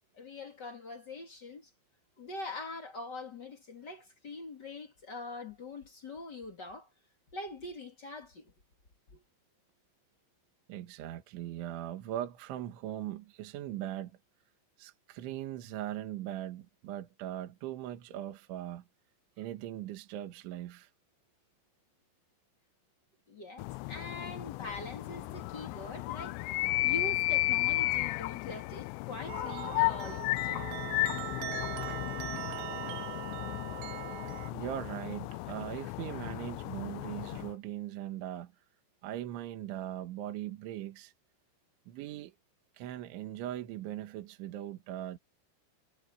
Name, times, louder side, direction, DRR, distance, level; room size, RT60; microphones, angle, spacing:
voice 1, 0.1-1.7 2.2-6.9 7.3-8.5 9.1-9.2 23.3-26.5 26.8-30.6, left 2 dB, 40° left, 1.6 m, -43 dB
voice 2, 10.7-14.2 14.8-18.8 19.4-20.9 34.5-38.5 39.0-41.1 41.9-42.3 42.8-45.2, right 12 dB, 70° right, 4.0 m, -40 dB
sound 1, 23.6-37.5, left 21 dB, 85° left, 2.6 m, -34 dB
sound 2, 25.0-33.2 33.6-33.7, left 3 dB, 55° left, 6.5 m, -62 dB
sound 3, 29.3-34.5, right 13 dB, 85° right, 4.1 m, -41 dB
omnidirectional pair, 5.7 m